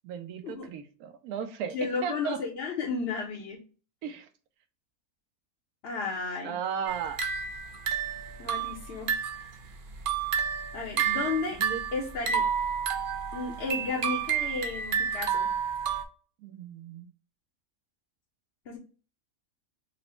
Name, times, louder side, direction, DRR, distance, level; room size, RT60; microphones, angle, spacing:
voice 1, 0.0-2.4 4.0-4.3 6.4-7.2 11.5-11.8 16.4-17.1, right 7 dB, 85° right, 7 dB, 1.1 m, -35 dB
voice 2, 1.7-3.6 5.8-6.5 8.4-9.5 10.7-11.6 11.9-12.4 13.3-15.5 18.7-18.8, left 4 dB, 55° left, -2 dB, 0.8 m, -33 dB
sound 1, 6.9-9.5 9.9-16.0, right 7 dB, 65° right, 0.5 m, -30 dB
4.0 x 2.0 x 4.3 m, 0.38 s
omnidirectional pair, 1.5 m